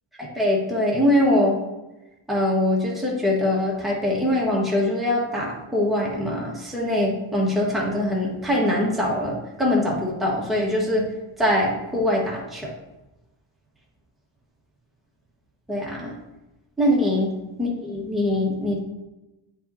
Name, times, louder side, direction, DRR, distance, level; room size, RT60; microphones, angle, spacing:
voice 1, 0.3-1.6 2.3-11.0 11.4-12.7 15.7-16.1 16.8-17.3 17.6-18.8, left 1 dB, ahead, -5 dB, 1.7 m, -23 dB
9.1 x 5.6 x 2.9 m, 0.99 s
wide cardioid pair, 105°, 48 cm